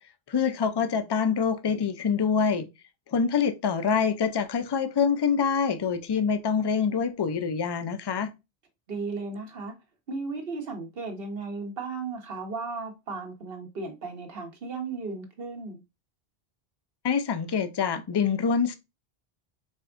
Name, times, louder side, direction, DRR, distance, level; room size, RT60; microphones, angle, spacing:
voice 1, 0.3-2.7 3.1-8.3 17.0-18.8, left 6 dB, 45° left, 0.3 m, -25 dB
voice 2, 8.9-9.7 10.1-15.8, right 4 dB, 70° right, 1.2 m, -35 dB
4.5 x 3.4 x 2.5 m
omnidirectional pair, 1.0 m